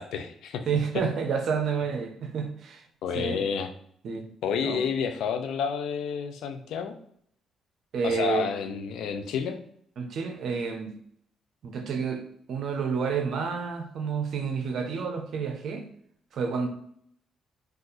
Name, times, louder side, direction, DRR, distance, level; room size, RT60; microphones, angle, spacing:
voice 1, 0.0-0.7 3.0-3.7 4.4-6.9 8.0-9.6, left 6 dB, 80° left, 7 dB, 0.4 m, -30 dB
voice 2, 0.7-2.8 3.1-3.4 4.0-4.3 4.6-4.8 7.9-8.5 10.0-10.9 11.6-12.2 12.5-15.8 16.3-16.7, right 6 dB, 65° right, 5 dB, 0.6 m, -29 dB
2.7 x 2.5 x 3.9 m, 0.68 s
cardioid pair, 90°, 0 cm